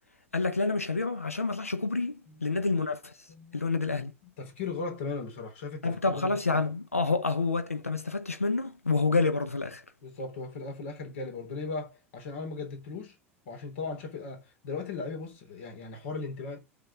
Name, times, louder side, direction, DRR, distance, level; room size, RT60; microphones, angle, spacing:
voice 1, 0.3-3.3 3.5-4.1 5.8-9.8, left 3 dB, 90° left, 0.8 m, -28 dB
voice 2, 2.3-2.7 3.3-4.0 4.4-6.6 10.0-13.2 13.5-16.6, left 4 dB, 65° left, 3.7 m, -38 dB
7.8 x 6.5 x 6.5 m
figure-of-eight pair, 75°, 7 cm